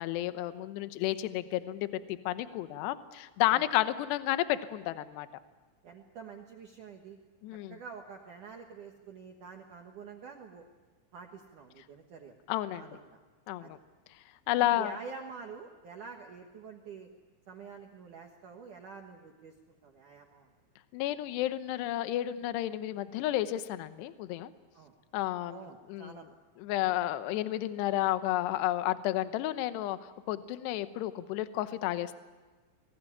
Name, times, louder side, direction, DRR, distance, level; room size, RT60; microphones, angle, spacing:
voice 1, 0.0-5.3 7.4-7.8 12.5-12.9 13.5-13.8 14.5-15.0 20.9-24.5 25.1-25.6 25.9-26.1 26.6-32.2, left 14 dB, 75° left, 11 dB, 2.7 m, -31 dB
voice 2, 5.8-7.2 7.7-10.7 11.1-12.4 12.7-13.2 13.6-13.7 14.6-17.1 17.5-20.5 24.7-25.2 25.5-26.3 26.8-27.0, right 5 dB, 70° right, 2 dB, 1.9 m, -47 dB
25.0 x 19.5 x 9.9 m, 1.4 s
omnidirectional pair, 5.8 m